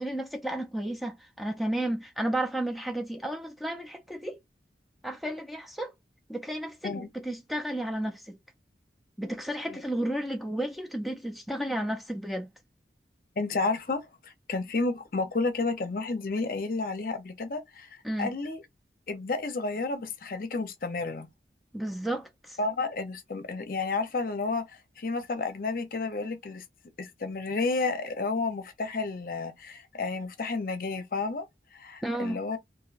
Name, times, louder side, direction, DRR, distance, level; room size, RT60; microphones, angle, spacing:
voice 1, 0.0-4.4 5.0-5.9 6.3-8.4 9.2-12.5 18.0-18.3 21.7-22.6 32.0-32.4, right 1 dB, ahead, 0.4 m, -32 dB
voice 2, 13.4-18.6 19.1-21.3 22.6-26.6 27.0-31.5 31.7-32.6, left 3 dB, 50° left, 0.6 m, -31 dB
2.6 x 2.1 x 3.9 m
head